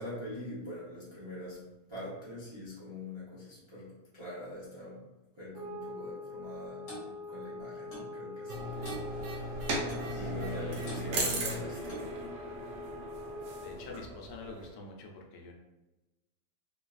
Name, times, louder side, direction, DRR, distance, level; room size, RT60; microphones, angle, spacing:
voice 1, 0.0-1.6 1.9-5.0 5.4-9.7 10.1-12.2, left 1 dB, 35° right, -9 dB, 0.4 m, -44 dB
sound 1, 5.5-13.9, left 2 dB, 55° right, 0.8 m, -44 dB
Clock, 6.9-7.1 7.9-8.1 8.8-9.1 9.9-10.1 10.9-11.1 11.9-12.1, equal, 50° left, 1.1 m, -44 dB
sound 2, 8.5-14.7, right 1 dB, 75° right, 1.3 m, -37 dB
voice 2, 10.1-11.3 13.6-15.5, left 3 dB, 75° left, 0 dB, 1.2 m, -47 dB
3.8 x 2.3 x 2.4 m, 1.0 s
omnidirectional pair, 1.9 m